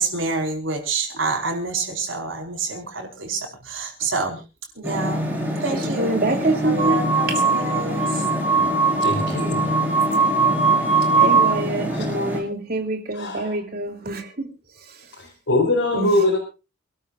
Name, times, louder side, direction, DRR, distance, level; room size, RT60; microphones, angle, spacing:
voice 1, 0.0-4.4 4.8-5.2 5.6-8.2, right 3 dB, 90° right, 4.7 m, -28 dB
sound 1, 4.8-12.4, left 1 dB, 10° right, 5.0 m, -26 dB
voice 2, 5.7-7.0 7.3-7.4 11.2-14.5 15.9-16.1, right 2 dB, 50° right, 3.0 m, -25 dB
sound 2, 6.8-11.6, right 5 dB, 35° right, 4.1 m, -20 dB
voice 3, 9.0-9.6 11.9-12.1 13.1-13.6 15.1-16.4, left 2 dB, 85° left, 4.4 m, -22 dB
28.0 x 12.5 x 2.5 m
head